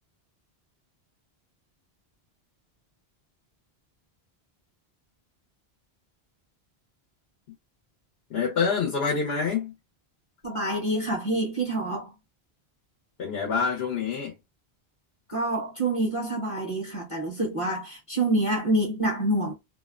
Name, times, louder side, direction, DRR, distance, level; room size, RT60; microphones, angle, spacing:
voice 1, 8.3-9.7 13.2-14.3, left 5 dB, 70° left, 1.0 m, -26 dB
voice 2, 10.4-12.1 15.3-19.5, right 1 dB, 35° left, 0.9 m, -27 dB
2.6 x 2.1 x 2.3 m
omnidirectional pair, 1.1 m